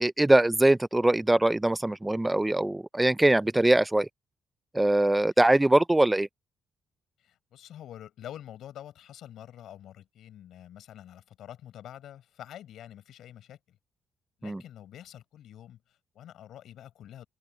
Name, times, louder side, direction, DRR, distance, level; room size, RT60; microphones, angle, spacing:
voice 1, 0.0-4.1 4.7-6.3 14.4-14.6, right 1 dB, 10° right, 0.4 m, -22 dB
voice 2, 7.2-13.8 14.4-17.3, left 11 dB, 75° left, 7.1 m, -47 dB
open air
cardioid pair, 90°, 0 cm